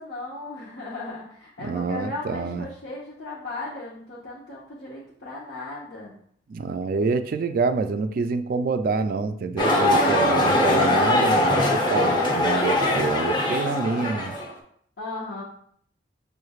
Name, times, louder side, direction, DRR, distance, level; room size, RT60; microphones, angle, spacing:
voice 1, 0.0-6.1 15.0-15.4, left 2 dB, 75° left, -7 dB, 0.9 m, -36 dB
voice 2, 1.7-2.7 6.5-14.4, right 4 dB, 50° right, 9 dB, 0.3 m, -27 dB
sound 1, 9.6-14.5, left 1 dB, 25° left, 0.8 m, -21 dB
6.5 x 3.2 x 2.3 m, 0.64 s
head